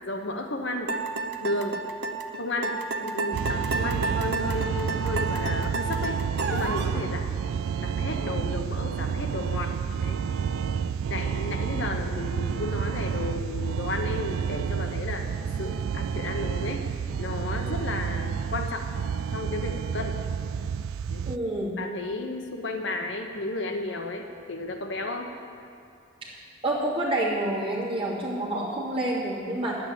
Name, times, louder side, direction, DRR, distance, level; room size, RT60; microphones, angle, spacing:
voice 1, 0.0-0.9 1.4-1.8 2.4-6.2 6.5-7.4 7.8-9.7 10.0-10.2 11.1-15.3 15.6-16.8 17.2-18.9 19.3-20.1 21.1-21.3 21.8-25.3, left 2 dB, 60° left, 4 dB, 0.8 m, -33 dB
sound 1, 0.9-7.0, right 3 dB, 50° right, 0.8 m, -31 dB
sound 2, 3.3-21.4, right 7 dB, 85° right, 0.3 m, -30 dB
voice 2, 21.3-21.8 26.2-26.4 26.6-29.8, right 1 dB, 25° right, -7 dB, 2.5 m, -28 dB
10.5 x 7.9 x 8.5 m, 2.5 s
head